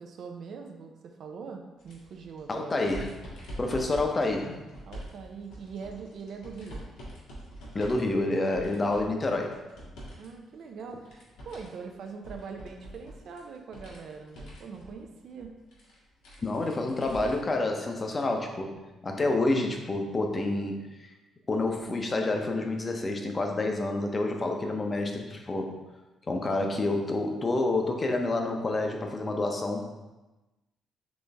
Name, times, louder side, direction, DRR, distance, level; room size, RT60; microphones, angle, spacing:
voice 1, 0.0-2.8 3.7-3.8 4.9-6.8 10.2-11.1 11.4-15.5, right 5 dB, 65° right, 3 dB, 0.5 m, -42 dB
sound 1, 1.8-10.3 10.6-17.6 18.0-18.1 19.3-19.4, right 1 dB, 90° left, 1.3 m, -45 dB
voice 2, 2.5-3.1 3.6-4.6 7.7-9.6 16.4-20.9 21.5-25.8 26.3-29.8, left 2 dB, 30° left, 3 dB, 0.6 m, -28 dB
4.0 x 3.1 x 3.4 m, 1.1 s
cardioid pair, 90°, 0 cm